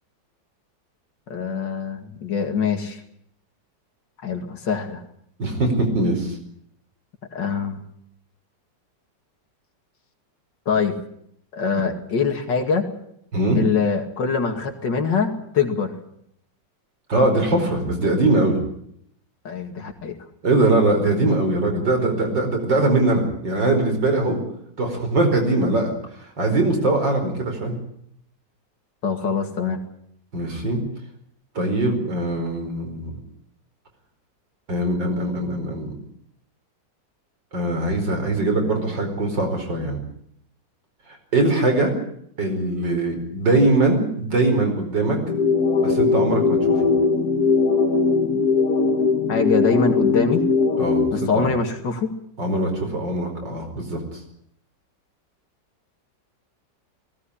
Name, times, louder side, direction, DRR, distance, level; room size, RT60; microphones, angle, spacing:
voice 1, 1.3-3.0 4.2-5.0 7.3-7.8 10.7-11.0 11.5-12.9 13.5-16.0 19.4-20.2 29.0-29.8 49.3-50.4 51.1-52.1, left 5 dB, 80° left, 4 dB, 2.9 m, -23 dB
voice 2, 5.4-6.4 13.3-13.6 17.1-18.6 20.4-24.4 24.8-25.9 26.4-27.7 30.3-30.8 31.6-33.2 34.7-35.9 37.5-40.0 41.3-41.9 42.4-45.2 45.8-46.8 50.8-51.5 52.4-54.2, right 2 dB, 85° right, 4 dB, 5.5 m, -21 dB
sound 1, 45.3-51.3, left 4 dB, 55° left, 1.8 m, -20 dB
19.0 x 17.5 x 10.0 m, 0.71 s
omnidirectional pair, 1.9 m